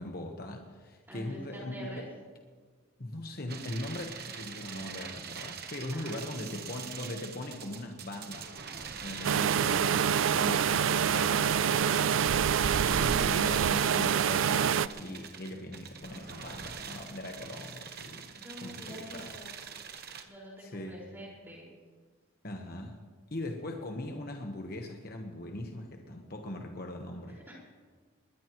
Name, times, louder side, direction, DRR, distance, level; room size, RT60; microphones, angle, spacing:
voice 1, 0.0-2.0 3.0-19.3 20.6-21.0 22.4-23.0 23.3-27.4, left 1 dB, 45° left, 2 dB, 1.2 m, -40 dB
voice 2, 1.1-2.1 5.9-6.3 18.3-19.6 20.2-21.7 27.3-27.5, equal, 10° right, -4 dB, 5.0 m, -47 dB
sound 1, 3.5-20.2, right 6 dB, 45° right, 1.1 m, -44 dB
sound 2, 9.2-14.9, right 8 dB, 65° right, 0.4 m, -26 dB
21.0 x 20.0 x 3.1 m, 1.5 s
head